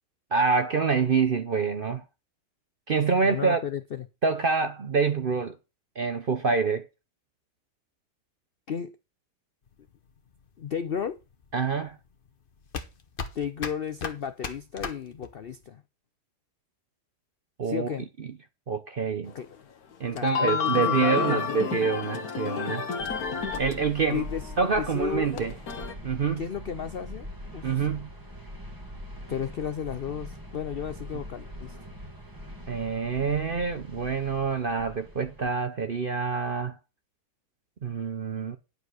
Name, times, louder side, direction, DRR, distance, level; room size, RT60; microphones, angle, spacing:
voice 1, 0.3-2.0 2.9-3.6 4.2-5.6 6.0-6.8 11.5-12.0 17.6-17.9 18.7-19.3 20.0-22.8 23.6-24.2 24.6-25.5 26.0-26.4 27.6-28.1 32.7-36.7 37.8-38.6, right 5 dB, 50° right, 0.6 m, -26 dB
voice 2, 3.2-4.1 8.7-8.9 10.6-11.2 13.3-15.8 17.6-18.1 19.3-19.6 20.1-21.6 24.1-24.5 24.8-25.5 26.4-27.3 27.5-27.9 29.3-31.8, left 8 dB, 85° left, 0.5 m, -33 dB
sound 1, 9.7-15.6, left 5 dB, 35° left, 1.0 m, -38 dB
sound 2, 19.3-19.4 19.9-23.7 24.0-25.9, left 6 dB, 60° left, 1.5 m, -30 dB
sound 3, 23.0-35.5, left 1 dB, 10° right, 1.6 m, -42 dB
10.5 x 4.9 x 6.3 m
omnidirectional pair, 1.9 m